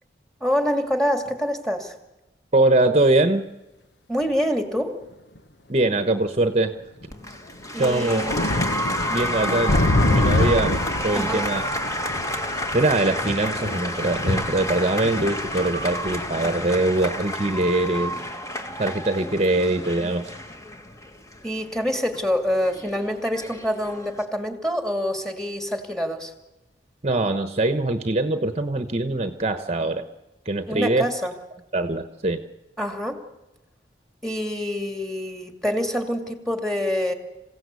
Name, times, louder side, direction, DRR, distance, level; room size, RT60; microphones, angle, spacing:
voice 1, 0.4-1.9 4.1-5.0 7.7-8.4 11.1-11.4 21.4-26.3 30.7-31.3 32.8-33.2 34.2-37.1, equal, 5° left, 5 dB, 2.7 m, -26 dB
voice 2, 2.5-3.5 5.7-6.8 7.8-8.3 9.1-9.8 10.0-11.6 12.7-18.1 18.8-20.2 27.0-30.0 30.4-31.1 31.7-32.4, right 2 dB, 35° right, 8 dB, 1.1 m, -22 dB
sound 1, 4.2-4.3 5.4-5.5 6.6-6.7 7.0-7.1 7.6-17.7 18.1-18.3, left 1 dB, 70° left, 1.2 m, -27 dB
Applause, 7.1-24.2, left 1 dB, 20° left, 1.9 m, -30 dB
27.5 x 16.5 x 8.4 m, 1.0 s
head